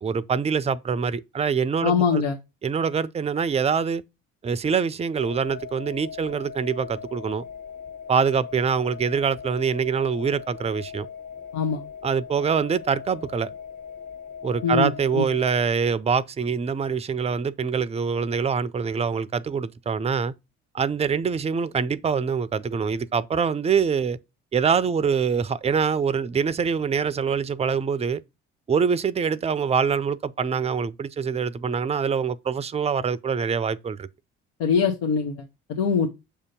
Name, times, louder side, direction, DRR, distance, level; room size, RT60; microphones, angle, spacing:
voice 1, 0.0-2.2 2.6-4.0 4.4-7.4 8.1-11.1 12.0-13.5 14.4-20.3 20.7-24.2 24.5-28.2 28.7-34.1, right 6 dB, 20° right, 0.4 m, -24 dB
voice 2, 1.8-2.4 11.5-11.8 14.6-15.2 34.6-35.4 35.7-36.1, left 6 dB, 80° left, 0.8 m, -22 dB
sound 1, 5.2-15.6, left 7 dB, 25° left, 0.8 m, -40 dB
6.7 x 2.8 x 5.1 m
hypercardioid pair, 60°, 30 cm